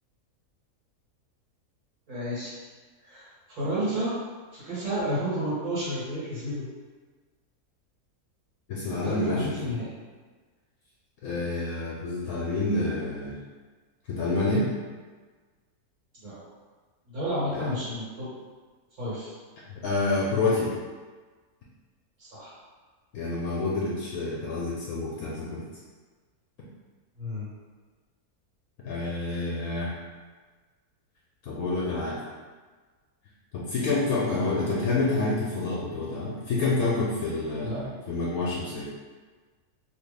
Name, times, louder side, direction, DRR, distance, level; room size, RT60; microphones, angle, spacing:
voice 1, 2.1-2.5 3.0-4.2 4.5-6.6 9.0-9.9 16.2-16.4 17.1-18.3 19.0-19.3 22.2-22.5 27.2-27.5 34.1-34.7 37.6-37.8, equal, 70° right, -11 dB, 1.9 m, -31 dB
voice 2, 8.7-9.8 11.2-13.4 14.1-14.7 17.5-17.7 19.7-20.7 23.1-25.6 28.8-29.9 31.4-32.2 33.5-38.8, left 3 dB, 75° left, -5 dB, 1.0 m, -28 dB
3.3 x 2.3 x 3.3 m, 1.4 s
omnidirectional pair, 1.6 m